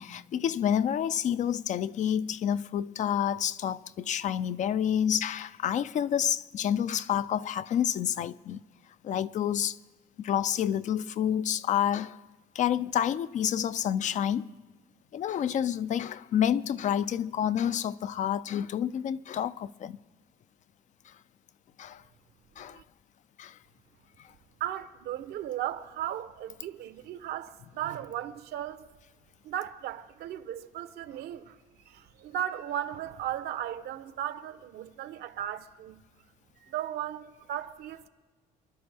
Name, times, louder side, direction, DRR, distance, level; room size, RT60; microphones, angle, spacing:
voice 1, 0.0-8.6 9.0-9.8 10.2-12.2 12.5-14.5 15.1-20.0 21.1-21.2 21.8-22.0 22.6-22.8 23.4-23.6 24.2-24.3, left 9 dB, 45° left, 0.4 m, -29 dB
voice 2, 24.6-28.9 29.4-31.6 31.9-36.0 36.6-38.1, right 11 dB, 75° right, 0.8 m, -36 dB
26.5 x 11.0 x 3.4 m
cardioid pair, 110°, 17 cm